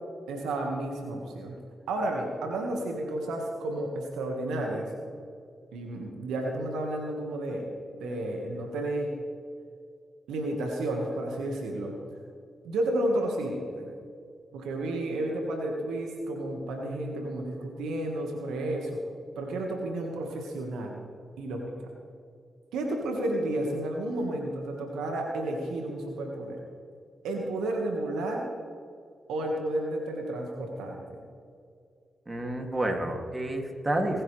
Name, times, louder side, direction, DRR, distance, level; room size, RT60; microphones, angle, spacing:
voice 1, 0.3-1.6 1.9-4.9 5.7-7.7 7.9-9.1 10.3-12.0 12.6-13.9 14.5-19.0 19.3-21.0 21.4-21.8 22.7-26.6 27.2-28.5 29.3-31.0, right 1 dB, 85° right, 1 dB, 1.7 m, -31 dB
voice 2, 32.3-34.2, right 1 dB, 30° right, 3 dB, 2.6 m, -29 dB
20.0 x 10.0 x 3.4 m, 2.3 s
supercardioid pair, 40°, 0 cm